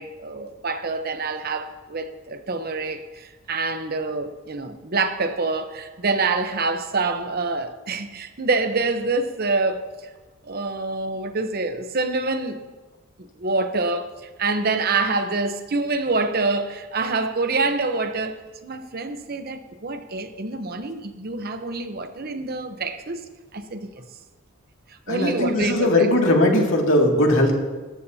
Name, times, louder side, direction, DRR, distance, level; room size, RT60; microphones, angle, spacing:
voice 1, 0.0-9.8 10.4-12.6 13.2-23.3 23.5-23.9 24.9-26.1, right 3 dB, 45° right, 0.9 m, -26 dB
voice 2, 25.1-27.5, left 1 dB, 65° left, 2.3 m, -19 dB
19.5 x 14.0 x 2.8 m
head